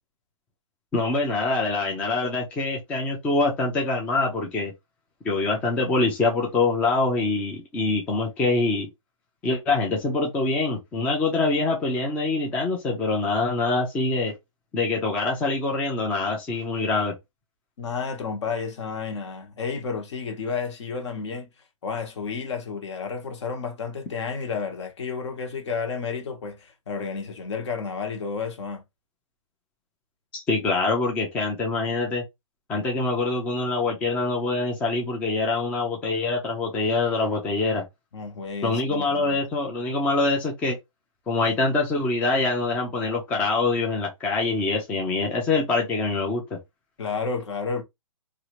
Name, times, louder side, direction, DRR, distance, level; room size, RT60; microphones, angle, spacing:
voice 1, 0.9-4.7 5.2-8.9 9.4-14.3 14.7-17.2 30.3-32.2 32.7-37.8 38.6-40.8 41.3-46.6, left 3 dB, 10° left, 0.4 m, -24 dB
voice 2, 17.8-21.5 21.8-28.8 38.1-39.4 47.0-47.8, left 5 dB, 55° left, 1.1 m, -31 dB
2.8 x 2.4 x 2.9 m
hypercardioid pair, 150°, 17 cm